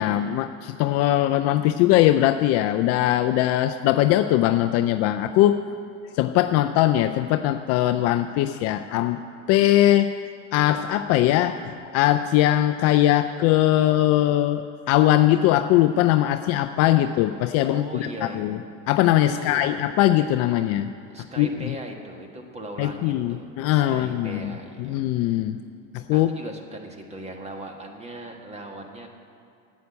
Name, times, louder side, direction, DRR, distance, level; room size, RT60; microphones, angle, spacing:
voice 1, 0.0-5.6 6.1-9.2 9.5-10.1 10.5-11.6 11.9-18.6 18.9-20.9 21.4-21.7 22.8-24.5 24.8-25.6 25.9-26.3, left 13 dB, 40° left, 8 dB, 0.4 m, -21 dB
voice 2, 17.7-18.6 19.3-19.8 21.1-25.4 26.1-29.1, right 1 dB, 15° right, 3 dB, 1.4 m, -39 dB
9.4 x 8.3 x 8.8 m, 2.5 s
hypercardioid pair, 115°, 38 cm